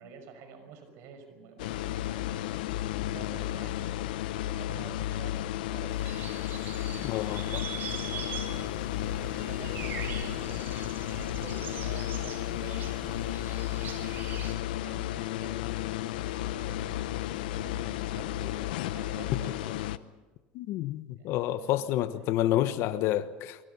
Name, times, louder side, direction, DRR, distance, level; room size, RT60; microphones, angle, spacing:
voice 1, 0.0-6.1 7.7-11.1 11.4-12.9 13.8-19.7 21.1-22.4, right 5 dB, 65° right, 5.9 m, -49 dB
sound 1, 1.6-20.0, left 14 dB, 85° left, 0.8 m, -33 dB
sound 2, 5.9-14.5, right 6 dB, 45° right, 5.3 m, -42 dB
voice 2, 7.0-7.7 20.5-23.6, left 13 dB, 65° left, 1.2 m, -29 dB
24.5 x 23.5 x 5.6 m
supercardioid pair, 100°, 5 cm